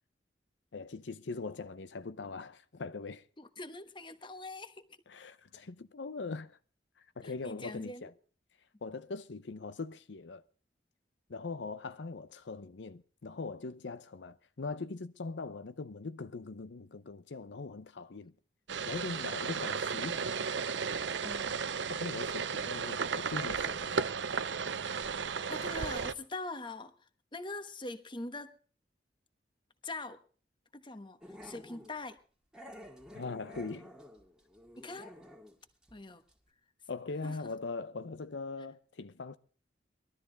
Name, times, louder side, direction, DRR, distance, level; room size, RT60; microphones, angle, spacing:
voice 1, 0.7-3.2 5.1-6.6 7.0-8.1 8.8-10.4 11.3-18.3 18.8-20.3 21.9-24.1 33.1-33.9 36.9-39.4, left 3 dB, 80° left, 0.7 m, -41 dB
voice 2, 3.4-4.9 7.2-8.1 21.2-21.6 23.8-24.0 25.5-26.9 27.3-28.5 29.8-30.2 30.7-32.2 34.8-35.1 35.9-36.2 37.2-37.4, left 2 dB, 25° left, 1.2 m, -43 dB
sound 1, 18.7-26.1, right 5 dB, 85° right, 0.7 m, -34 dB
Growling, 31.2-31.9 32.5-35.6 35.8-36.0 36.3-36.4, equal, 5° right, 1.8 m, -51 dB
20.5 x 13.0 x 4.0 m
head